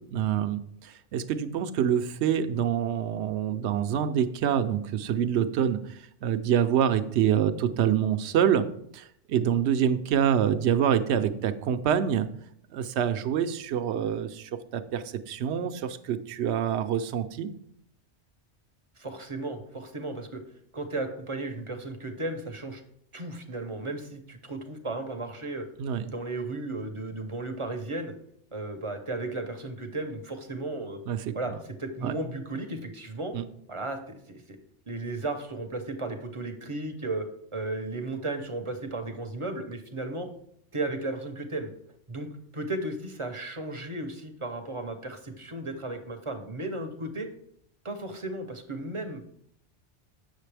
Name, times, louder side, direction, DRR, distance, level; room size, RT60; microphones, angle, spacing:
voice 1, 0.1-8.7 8.9-12.3 12.7-17.5 25.8-26.0 31.1-31.2 32.0-32.1 33.3-33.4, right 9 dB, 70° right, 11 dB, 0.8 m, -26 dB
voice 2, 19.0-20.4 20.7-22.8 23.1-25.7 26.0-28.1 28.5-31.0 31.3-33.3 33.7-34.6 34.9-37.3 37.5-40.3 40.7-41.7 42.1-47.3 47.8-49.2, right 2 dB, 30° right, 6 dB, 0.7 m, -35 dB
8.2 x 6.5 x 3.3 m, 0.70 s
omnidirectional pair, 1.2 m